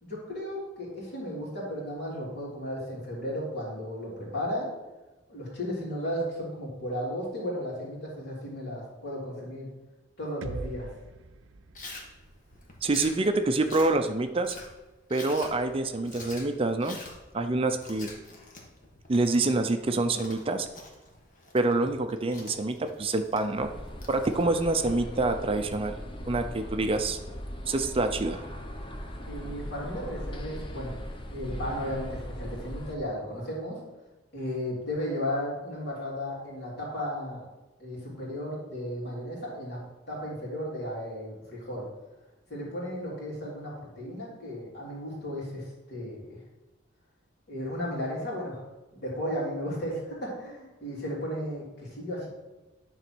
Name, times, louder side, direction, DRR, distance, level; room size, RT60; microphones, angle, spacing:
voice 1, 0.0-4.7 5.3-9.7 10.2-10.9 29.3-31.0 31.3-33.8 34.3-37.5 37.8-39.8 40.1-41.9 42.5-46.4 47.5-48.6 48.9-52.3, equal, 60° left, -5 dB, 3.3 m, -34 dB
sound 1, 10.4-14.3, right 2 dB, 85° right, 0.6 m, -44 dB
Chewing mastication, 11.7-24.8, left 2 dB, 45° left, 1.5 m, -47 dB
voice 2, 12.8-14.6 15.1-17.0 17.3-18.1 19.1-20.7 21.5-23.7 24.1-25.9 26.3-27.2 27.7-28.4, right 2 dB, 30° right, 7 dB, 0.5 m, -26 dB
sound 2, 23.6-32.9, equal, 25° left, 0.8 m, -39 dB
9.9 x 4.0 x 6.1 m, 1.1 s
head